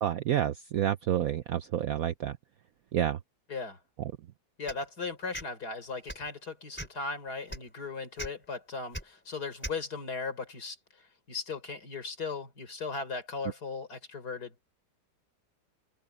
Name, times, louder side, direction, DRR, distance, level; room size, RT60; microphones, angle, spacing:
voice 1, 0.0-2.3 2.9-3.2, right 11 dB, 65° right, 1.0 m, -29 dB
voice 2, 4.6-10.8 11.3-14.5, left 4 dB, 60° left, 4.7 m, -37 dB
sound 1, 4.7-4.8 5.3-5.5 6.0-6.3 6.7-7.0 7.5-7.6 8.2-8.3 8.9-9.0 9.6-9.8, equal, 5° left, 4.1 m, -38 dB
omnidirectional pair, 1.9 m